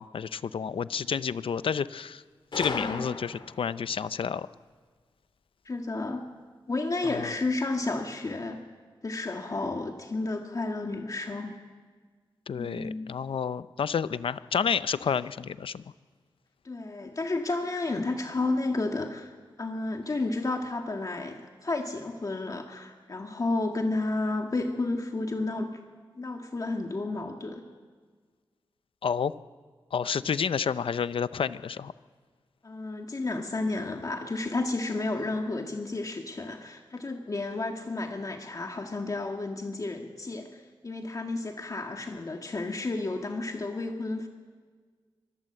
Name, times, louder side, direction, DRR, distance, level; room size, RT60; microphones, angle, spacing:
voice 1, 0.0-2.2 2.6-4.5 7.1-7.3 12.5-15.8 29.0-29.3 29.9-31.9, left 6 dB, 80° left, 15 dB, 0.6 m, -30 dB
Gunshot gunfire, 2.5-3.7, left 4 dB, 65° left, 2.1 m, -35 dB
voice 2, 2.7-3.0 5.7-6.2 6.7-8.6 9.0-11.5 12.5-13.1 16.6-19.3 19.6-25.7 26.2-27.6 32.6-44.3, left 2 dB, 40° left, 3 dB, 1.7 m, -32 dB
24.5 x 20.0 x 7.8 m, 1.5 s
wide cardioid pair, 110°, 9 cm